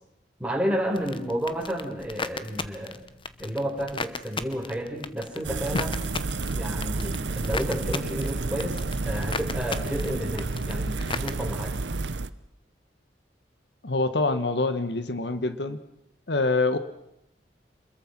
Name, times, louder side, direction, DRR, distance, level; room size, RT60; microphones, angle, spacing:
voice 1, 0.4-3.0 3.4-5.9 6.5-11.8, equal, 5° right, 1 dB, 4.4 m, -31 dB
sound 1, 0.9-11.3, left 4 dB, 30° left, 1.0 m, -37 dB
sound 2, 5.4-12.3, right 3 dB, 85° right, 0.9 m, -30 dB
voice 2, 13.8-15.8 16.3-16.8, left 3 dB, 70° left, 11 dB, 1.3 m, -25 dB
27.0 x 21.5 x 6.0 m, 0.83 s
head